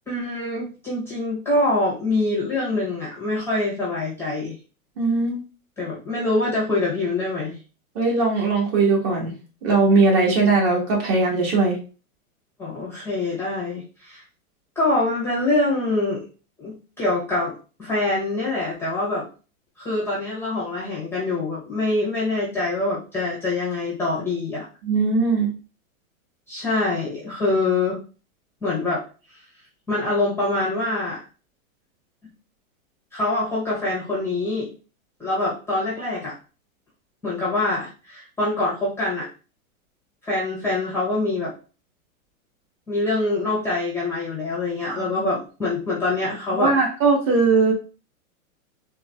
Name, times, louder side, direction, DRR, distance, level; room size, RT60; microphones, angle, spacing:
voice 1, 0.1-4.5 5.8-7.6 12.6-14.2 14.8-16.3 16.6-19.3 19.8-24.6 26.5-28.0 28.6-29.0 29.9-31.2 33.1-34.7 35.2-36.3 37.2-39.3 40.2-41.5 42.9-46.7, left 2 dB, 5° left, -7 dB, 0.6 m, -25 dB
voice 2, 5.0-5.4 7.9-9.3 9.6-11.8 24.8-25.5 45.0-45.1 46.6-47.7, right 3 dB, 45° right, -1 dB, 1.3 m, -19 dB
3.7 x 2.1 x 2.2 m, 0.34 s
hypercardioid pair, 140°, 43 cm